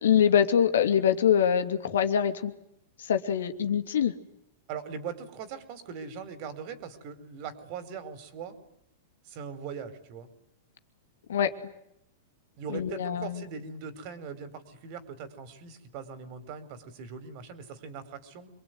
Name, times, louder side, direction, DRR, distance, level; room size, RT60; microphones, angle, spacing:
voice 1, 0.0-2.5 3.1-4.1 11.3-11.5 12.7-13.4, left 8 dB, 80° left, 7 dB, 2.7 m, -24 dB
voice 2, 4.7-8.6 9.2-10.3 12.6-18.5, right 6 dB, 50° right, 12 dB, 4.9 m, -40 dB
26.5 x 23.0 x 9.6 m, 0.78 s
hypercardioid pair, 110°, 0 cm